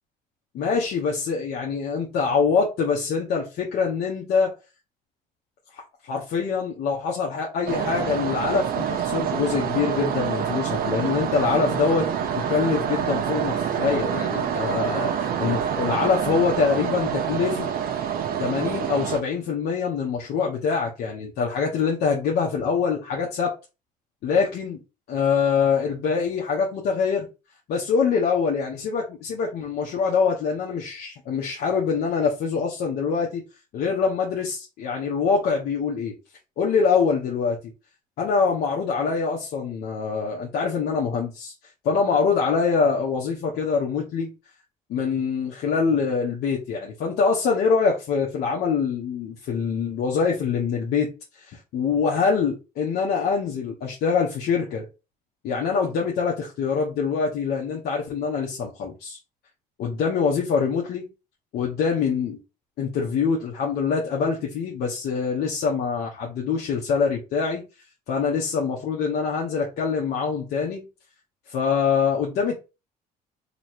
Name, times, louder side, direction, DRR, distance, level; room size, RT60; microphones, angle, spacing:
voice 1, 0.5-4.6 5.7-17.7 18.4-23.5 24.2-24.8 25.1-27.3 27.7-33.4 33.7-36.2 36.6-37.6 38.2-41.5 41.8-44.3 44.9-51.1 51.5-54.8 55.4-59.2 59.8-61.1 61.5-62.4 62.8-67.6 68.1-70.9 71.5-72.5, left 5 dB, 70° left, 1.0 m, -24 dB
sound 1, 7.7-19.2, right 8 dB, 60° right, 0.9 m, -26 dB
3.0 x 3.0 x 4.4 m
cardioid pair, 110°, 17 cm